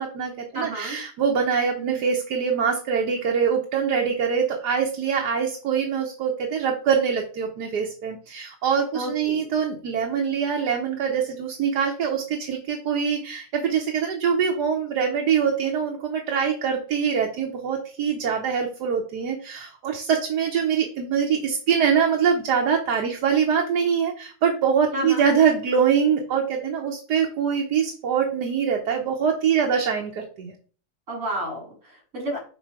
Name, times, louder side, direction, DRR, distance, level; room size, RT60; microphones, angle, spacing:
voice 1, 0.0-30.5, right 7 dB, 85° right, 1 dB, 1.6 m, -24 dB
voice 2, 0.5-1.0 1.8-2.0 8.9-9.4 24.9-25.2 31.1-32.4, right 1 dB, 55° right, 1 dB, 2.8 m, -31 dB
5.5 x 4.8 x 4.7 m, 0.39 s
omnidirectional pair, 1.7 m